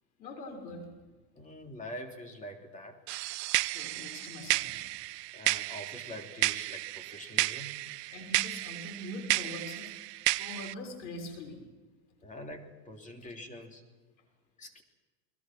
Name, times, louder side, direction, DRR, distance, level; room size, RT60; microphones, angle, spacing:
voice 1, 0.2-0.9 3.6-4.8 8.1-9.9 10.4-11.6 13.2-13.3, left 2 dB, 90° left, 4 dB, 6.7 m, -43 dB
voice 2, 1.4-3.2 5.3-7.8 12.2-13.8 14.6-14.8, left 1 dB, 15° left, 3 dB, 3.2 m, -45 dB
sound 1, 3.1-10.7, right 20 dB, 75° right, 0.6 m, -32 dB
29.5 x 21.5 x 6.2 m, 1.3 s
supercardioid pair, 130°, 50 cm